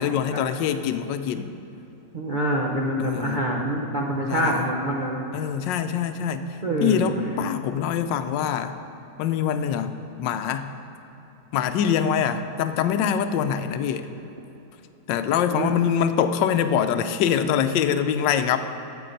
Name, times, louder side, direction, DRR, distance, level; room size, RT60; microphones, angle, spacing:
voice 1, 0.0-1.5 3.0-3.5 4.3-4.7 5.3-8.7 9.2-10.7 11.5-14.1 15.1-18.6, left 8 dB, 85° left, 9 dB, 1.3 m, -24 dB
voice 2, 2.1-5.3 6.6-7.2 15.5-15.7, right 1 dB, 55° right, -2 dB, 0.5 m, -26 dB
13.0 x 7.6 x 5.2 m, 2.9 s
omnidirectional pair, 1.9 m